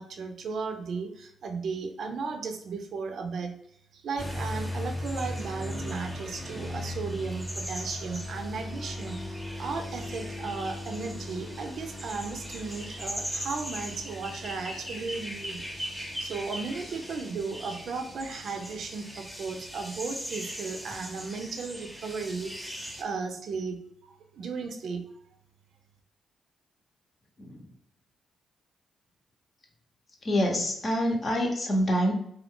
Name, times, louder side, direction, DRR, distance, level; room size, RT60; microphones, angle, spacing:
voice 1, 0.0-3.5 3.9-25.0, right 4 dB, 65° right, 5 dB, 0.4 m, -35 dB
sound 1, 4.2-23.0, equal, ahead, 0.7 m, -38 dB
voice 2, 30.2-32.1, equal, 45° left, 1 dB, 0.8 m, -26 dB
2.6 x 2.3 x 3.5 m, 0.72 s
hypercardioid pair, 45°, 0 cm